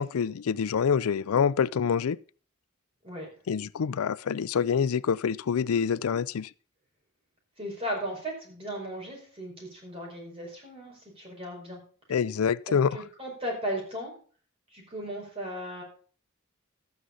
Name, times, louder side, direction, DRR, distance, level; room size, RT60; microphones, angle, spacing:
voice 1, 0.0-2.2 3.5-6.5 12.1-13.0, left 6 dB, 90° left, 0.4 m, -26 dB
voice 2, 7.6-11.8 12.7-14.1 14.7-15.8, equal, 25° right, 5.1 m, -36 dB
12.5 x 9.5 x 4.0 m
head